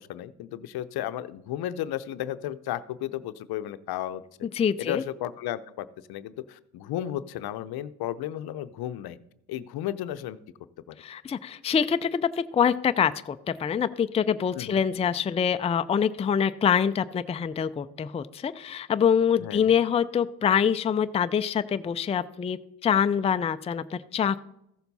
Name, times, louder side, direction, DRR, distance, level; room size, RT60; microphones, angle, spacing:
voice 1, 0.0-4.2 4.8-9.2 9.5-10.4 10.9-11.0 14.5-14.8 19.4-19.7, left 12 dB, 70° left, 13 dB, 0.7 m, -34 dB
voice 2, 4.6-5.0 11.0-24.4, left 7 dB, 15° left, 11 dB, 0.4 m, -25 dB
15.0 x 7.0 x 4.1 m, 0.80 s
cardioid pair, 80°, 39 cm